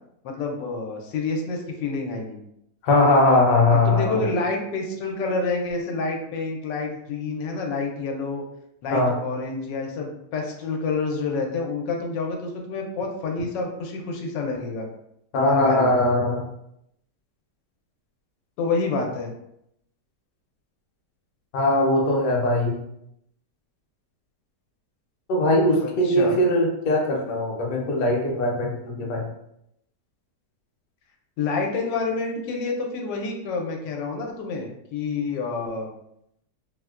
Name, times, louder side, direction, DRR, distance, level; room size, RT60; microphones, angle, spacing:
voice 1, 0.2-2.4 3.7-8.4 8.8-14.9 15.5-16.0 18.6-19.3 25.8-26.4 31.4-35.9, left 3 dB, 85° left, 1 dB, 1.3 m, -28 dB
voice 2, 2.8-4.2 8.9-9.1 15.3-16.5 21.5-22.7 25.3-29.3, left 1 dB, 60° left, -1 dB, 1.0 m, -20 dB
4.1 x 2.1 x 2.3 m, 0.78 s
omnidirectional pair, 1.9 m